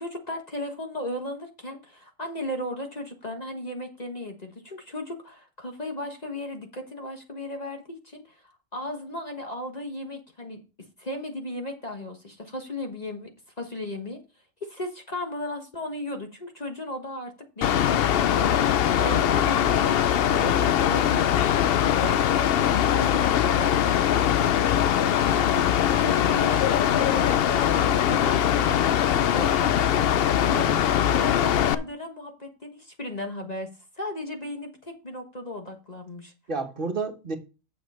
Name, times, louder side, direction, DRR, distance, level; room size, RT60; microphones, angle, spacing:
voice 1, 0.0-8.4 8.7-10.6 11.0-13.3 13.6-14.2 14.6-18.5 19.0-21.3 21.8-22.5 22.9-30.7 31.1-33.7 34.0-36.3, left 1 dB, 35° left, 1.3 m, -36 dB
Mechanical fan, 17.6-31.7, left 10 dB, 60° left, 0.7 m, -22 dB
voice 2, 30.5-30.8 36.5-37.4, right 4 dB, 45° right, 1.6 m, -31 dB
8.8 x 7.3 x 4.2 m
omnidirectional pair, 1.3 m